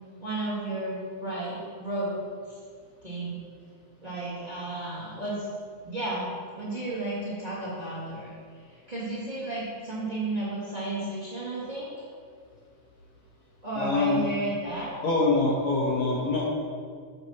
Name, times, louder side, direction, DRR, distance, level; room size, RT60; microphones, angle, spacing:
voice 1, 0.2-2.2 2.5-2.6 3.0-3.4 4.0-5.4 5.8-6.3 6.5-8.4 8.9-11.9 13.6-14.9, right 2 dB, 15° right, -8 dB, 1.8 m, -32 dB
voice 2, 13.7-14.2 15.0-16.4, left 3 dB, 65° left, -3 dB, 2.2 m, -24 dB
7.8 x 7.2 x 5.9 m, 2.1 s
omnidirectional pair, 3.9 m